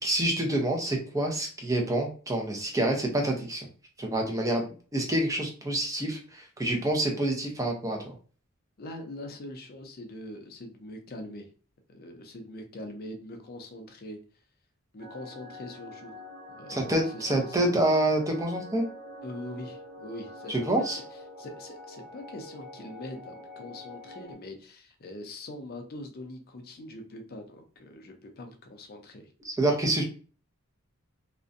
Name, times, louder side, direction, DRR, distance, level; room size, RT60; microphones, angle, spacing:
voice 1, 0.0-3.7 4.0-8.1 16.7-18.8 20.5-21.0 29.4-30.0, right 1 dB, 15° right, 1 dB, 0.5 m, -27 dB
voice 2, 8.8-11.5 11.9-14.2 14.9-16.1 16.5-17.7 19.2-21.0 21.4-29.3, left 1 dB, 45° left, 4 dB, 0.5 m, -42 dB
sound 1, 15.0-24.4, left 1 dB, 55° right, 0.8 m, -46 dB
2.5 x 2.1 x 2.5 m, 0.39 s
head